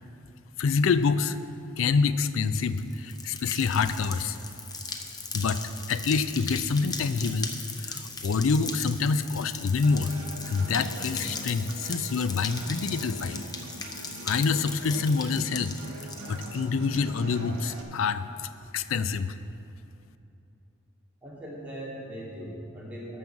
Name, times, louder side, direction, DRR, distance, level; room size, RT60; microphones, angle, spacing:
voice 1, 0.6-1.4 1.8-4.4 5.3-7.5 7.8-10.1 10.5-13.4 14.2-15.8 16.3-18.5 18.7-19.4, left 5 dB, 70° left, 12 dB, 0.4 m, -26 dB
sound 1, 2.4-16.6, left 4 dB, 20° left, 0.6 m, -39 dB
Human voice / Acoustic guitar, 9.8-17.8, right 2 dB, 85° right, 1.2 m, -43 dB
voice 2, 21.2-23.2, right 1 dB, 5° right, -7 dB, 2.2 m, -39 dB
12.0 x 5.5 x 7.1 m, 2.7 s
head